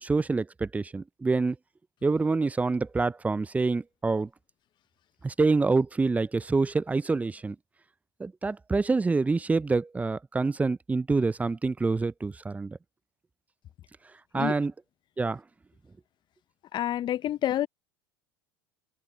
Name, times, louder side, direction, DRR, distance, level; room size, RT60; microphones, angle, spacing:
voice 1, 0.0-1.6 2.0-4.3 5.2-7.6 8.2-12.8 14.3-14.7 15.2-15.4, right 3 dB, 10° right, 0.4 m, -26 dB
voice 2, 16.7-17.7, left 12 dB, 35° left, 0.6 m, -28 dB
open air
hypercardioid pair, 80°, 13 cm